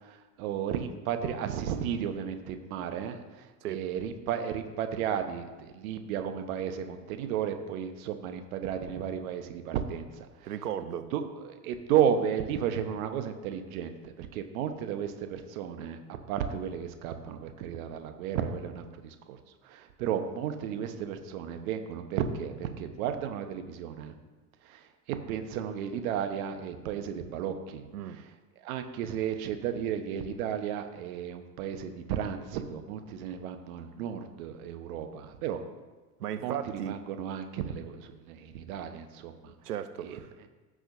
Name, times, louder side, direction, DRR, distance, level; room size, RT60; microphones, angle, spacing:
voice 1, 0.0-10.3 11.1-16.0 16.3-19.4 19.6-24.2 24.6-24.8 25.3-27.9 28.6-35.6 36.4-36.5 36.9-39.5 40.0-40.2, right 8 dB, 65° right, 7 dB, 1.1 m, -33 dB
voice 2, 10.5-11.1 27.9-28.2 36.2-37.0 39.6-40.3, right 9 dB, 80° right, 11 dB, 0.7 m, -36 dB
16.0 x 6.3 x 2.6 m, 1.2 s
hypercardioid pair, 75°, 46 cm